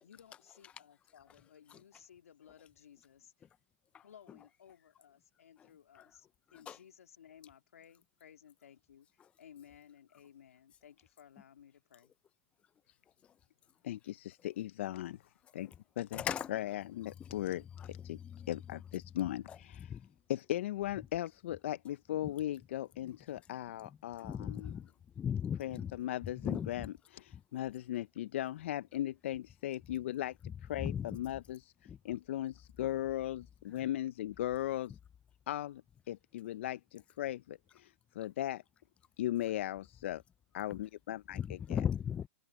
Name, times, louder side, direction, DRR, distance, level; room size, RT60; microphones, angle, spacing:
voice 1, 0.0-3.5 4.0-12.1, left 9 dB, 75° left, 2.2 m, -59 dB
voice 2, 13.8-15.2 15.5-16.2 16.5-18.2 18.5-20.0 20.3-24.7 25.6-30.4 30.6-35.0 35.5-38.6 39.2-40.2 40.5-41.8, left 13 dB, 55° left, 0.7 m, -38 dB
voice 3, 16.1-16.5 17.2-17.4 17.8-18.5 19.5-20.1 22.2-22.3 24.2-25.9 26.4-26.9 30.8-31.2 31.9-32.0 33.7-33.8 41.3-42.3, left 8 dB, 15° left, 0.5 m, -38 dB
hypercardioid pair, 135°, 8 cm